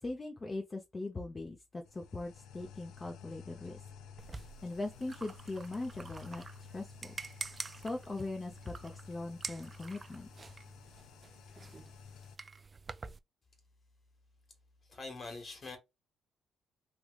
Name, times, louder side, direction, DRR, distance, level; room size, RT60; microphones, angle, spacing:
voice 1, 0.0-3.8 4.6-7.2 7.7-10.3, left 2 dB, 25° left, 0.7 m, -40 dB
sound 1, 1.8-12.4, left 7 dB, 85° left, 0.4 m, -53 dB
sound 2, 4.2-13.2, right 4 dB, 30° right, 0.3 m, -47 dB
voice 2, 14.9-15.8, left 3 dB, 45° left, 1.6 m, -44 dB
3.3 x 3.0 x 2.3 m
cardioid pair, 90°, 0 cm